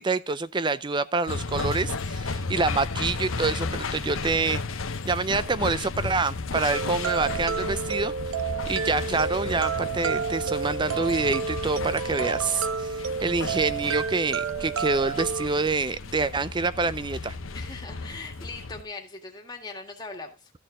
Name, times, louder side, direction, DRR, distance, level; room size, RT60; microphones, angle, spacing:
voice 1, 0.0-4.6 5.0-8.1 8.7-17.4, right 3 dB, 20° right, 0.5 m, -27 dB
sound 1, 1.3-18.8, left 3 dB, 70° left, 1.0 m, -34 dB
sound 2, 6.7-15.5, right 6 dB, 80° right, 0.5 m, -30 dB
voice 2, 17.5-20.5, left 3 dB, 20° left, 1.9 m, -40 dB
13.5 x 6.6 x 3.7 m
head